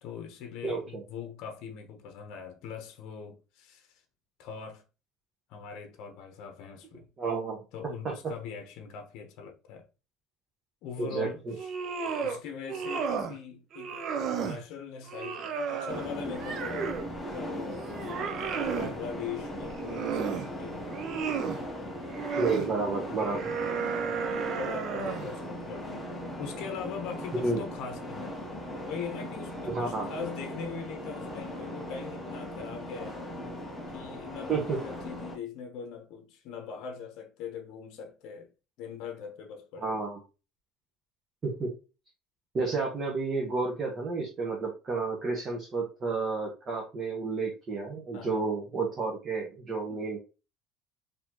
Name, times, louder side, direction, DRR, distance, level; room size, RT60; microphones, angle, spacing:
voice 1, 0.0-3.9 4.4-4.8 5.5-7.1 7.7-9.9 10.8-11.7 12.2-14.0 14.3-17.0 17.3-21.1 22.4-22.7 24.0-26.1 26.4-28.4 28.9-33.2 33.9-38.5 38.8-40.0 48.1-48.5 49.9-50.2, left 6 dB, 55° left, 0.9 m, -41 dB
voice 2, 0.6-1.0 7.2-7.6 11.0-11.5 22.4-23.5 27.4-27.6 29.7-30.1 34.5-34.8 39.8-40.2 41.4-41.7 42.5-50.2, right 3 dB, 25° right, 0.9 m, -31 dB
sound 1, 11.5-12.4 12.7-13.4 13.7-14.6 15.1-17.1 17.5-18.9 19.6-20.5 20.9-21.6 22.1-22.7 23.2-25.3, right 6 dB, 40° right, 0.5 m, -33 dB
sound 2, 15.9-35.4, equal, 10° left, 0.8 m, -39 dB
4.1 x 2.8 x 2.9 m
cardioid pair, 165°, 0 cm